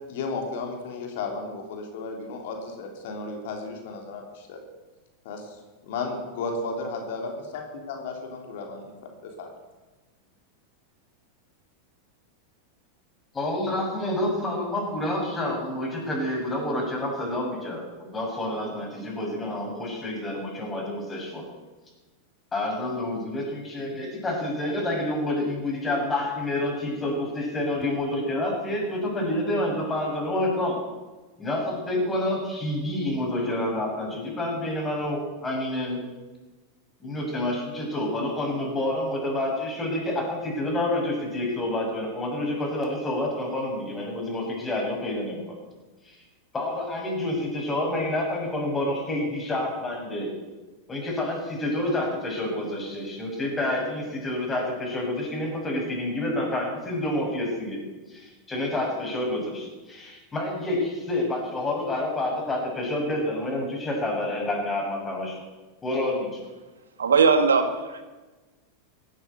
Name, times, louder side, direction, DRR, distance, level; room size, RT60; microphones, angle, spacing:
voice 1, 0.1-4.6 5.3-5.6 5.8-7.2 7.5-8.8 9.2-9.5, left 3 dB, 60° left, 2 dB, 3.4 m, -34 dB
voice 2, 13.3-21.4 22.5-30.8 31.4-36.0 37.0-45.6 46.1-46.2 46.5-50.3 50.9-57.8 58.1-65.4 65.8-66.4, left 1 dB, 20° left, -1 dB, 6.5 m, -28 dB
voice 3, 67.0-68.0, right 5 dB, 80° right, 7 dB, 1.9 m, -20 dB
16.5 x 9.5 x 8.2 m, 1.2 s
hypercardioid pair, 100°, 0 cm